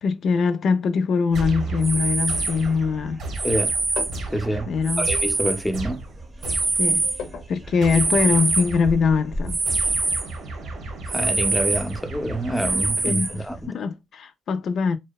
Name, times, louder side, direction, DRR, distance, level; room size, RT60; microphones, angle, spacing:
voice 1, 0.0-3.2 4.7-5.1 6.8-7.1 7.5-9.6 13.0-15.0, left 5 dB, 65° left, 0.3 m, -22 dB
sound 1, 1.3-6.0 6.4-10.3 10.7-10.8 11.1-12.1 12.6-13.6, right 3 dB, 35° right, 0.6 m, -25 dB
sound 2, 1.3-7.0 7.8-9.1 9.7-13.3, right 2 dB, 80° right, 0.8 m, -36 dB
sound 3, 3.9-6.1 6.4-8.4 8.6-8.8, left 5 dB, 90° left, 0.6 m, -39 dB
voice 2, 4.3-6.0 11.1-13.7, right 1 dB, 5° left, 0.5 m, -27 dB
2.7 x 2.1 x 2.2 m
cardioid pair, 90°, 0 cm